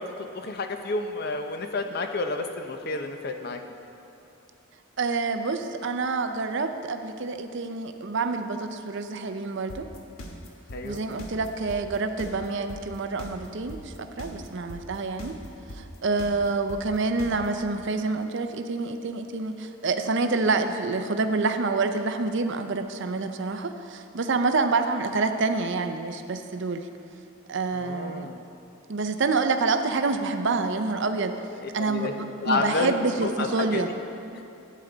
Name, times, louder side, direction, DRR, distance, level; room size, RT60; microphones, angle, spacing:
voice 1, 0.0-3.6 10.7-11.0 27.7-28.4 31.8-32.1 32.4-32.9 33.2-33.8 34.3-34.4, left 3 dB, 45° left, 5 dB, 0.6 m, -30 dB
voice 2, 5.0-9.9 10.8-15.3 15.7-26.9 27.5-28.3 28.9-31.3 31.7-32.1 32.4-33.9, right 3 dB, 55° right, 7 dB, 0.5 m, -27 dB
sound 1, 9.7-17.7, left 1 dB, 75° left, 1.1 m, -40 dB
12.5 x 8.5 x 3.9 m, 2.6 s
head